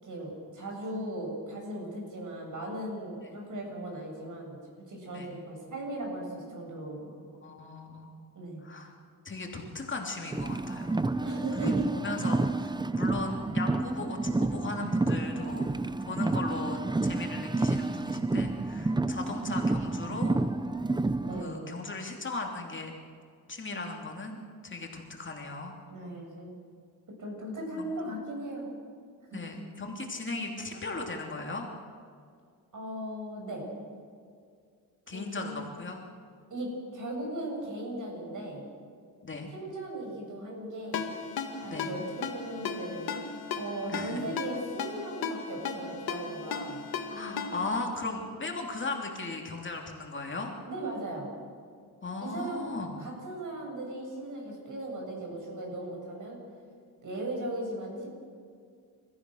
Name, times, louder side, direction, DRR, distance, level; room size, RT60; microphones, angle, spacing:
voice 1, 0.0-4.6 4.9-7.3 8.3-8.6 11.2-11.9 21.2-21.7 25.9-26.6 27.2-28.7 29.3-29.5 32.7-33.7 35.1-35.7 36.5-38.6 39.5-41.0 41.6-43.2 43.6-46.8 50.6-51.3 52.2-52.7 53.0-56.4 57.0-58.1, right 1 dB, 55° right, 1 dB, 7.4 m, -37 dB
voice 2, 7.4-8.1 8.6-8.9 9.2-10.9 11.6-15.7 16.1-20.4 21.4-22.9 23.5-25.7 27.8-27.9 29.3-31.7 35.1-36.0 39.2-39.5 41.7-41.9 43.9-44.2 47.1-50.5 52.0-53.0, left 3 dB, 30° left, 1 dB, 3.0 m, -37 dB
Car, 10.3-21.4, right 2 dB, 10° right, 0.7 m, -29 dB
Ringtone, 40.9-47.8, left 6 dB, 80° left, 2.1 m, -36 dB
30.0 x 14.5 x 6.5 m, 2.2 s
cardioid pair, 95°, 36 cm